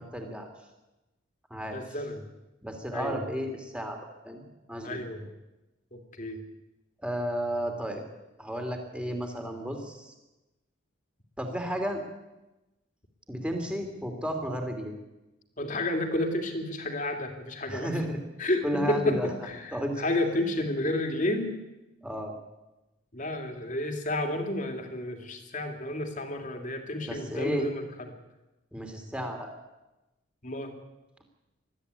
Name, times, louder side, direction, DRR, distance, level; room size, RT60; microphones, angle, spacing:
voice 1, 0.1-0.5 1.5-1.9 2.6-4.0 4.2-4.4 4.7-5.0 7.0-8.0 8.4-10.1 11.4-12.0 13.3-15.0 17.7-18.2 18.6-19.3 19.7-20.0 22.0-22.3 27.0-27.7 28.7-29.5, equal, 5° right, 4 dB, 3.0 m, -33 dB
voice 2, 1.7-2.2 2.9-3.2 4.8-5.3 5.9-6.4 15.6-17.9 18.4-21.6 23.1-28.1 30.4-30.7, left 1 dB, 40° left, 5 dB, 2.7 m, -31 dB
21.0 x 13.5 x 9.8 m, 1.0 s
head